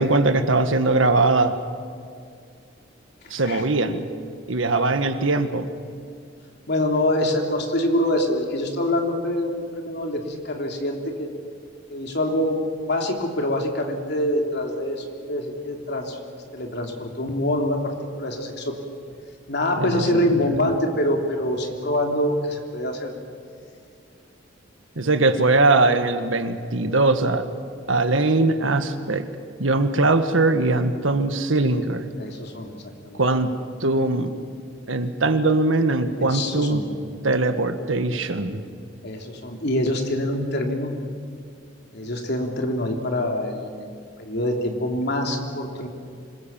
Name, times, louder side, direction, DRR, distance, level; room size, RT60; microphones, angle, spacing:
voice 1, 0.0-1.5 3.3-4.0 4.5-5.7 19.8-20.7 25.0-27.5 27.9-29.2 29.6-32.0 33.1-33.5 33.8-34.3 34.9-36.8 37.2-38.6, right 2 dB, 90° right, 9 dB, 1.6 m, -21 dB
voice 2, 6.7-11.3 11.9-16.2 16.5-18.7 19.5-23.1 32.2-32.8 33.0-33.2 36.2-36.9 39.0-41.0 41.9-43.7 44.2-45.9, left 1 dB, 60° left, 2 dB, 3.2 m, -25 dB
26.0 x 21.0 x 7.4 m, 2.3 s
head